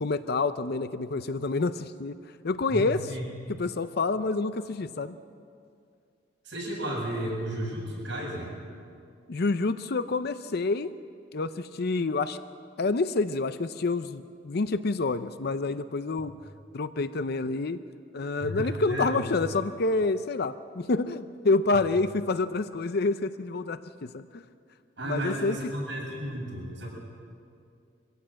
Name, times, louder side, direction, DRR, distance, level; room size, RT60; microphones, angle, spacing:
voice 1, 0.0-2.1 2.4-3.1 3.6-5.2 9.3-10.9 11.3-12.4 12.8-16.3 16.7-17.8 18.1-24.4 25.0-25.6, left 3 dB, 60° left, 11 dB, 0.6 m, -28 dB
voice 2, 2.7-3.3 6.4-8.5 16.2-16.3 18.4-19.2 25.0-26.9, right 1 dB, 75° right, -4 dB, 8.0 m, -33 dB
24.5 x 16.0 x 7.7 m, 2.3 s
head